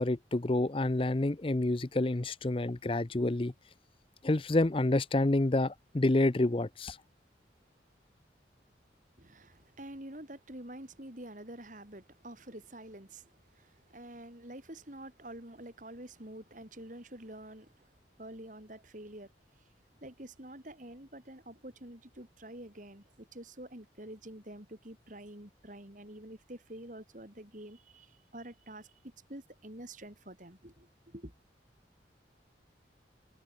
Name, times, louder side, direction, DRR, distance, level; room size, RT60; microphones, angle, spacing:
voice 1, 0.0-3.5 4.2-7.0, left 2 dB, 30° left, 0.6 m, -28 dB
voice 2, 9.2-17.9 18.2-19.3 20.0-31.3, right 1 dB, 45° right, 3.9 m, -48 dB
head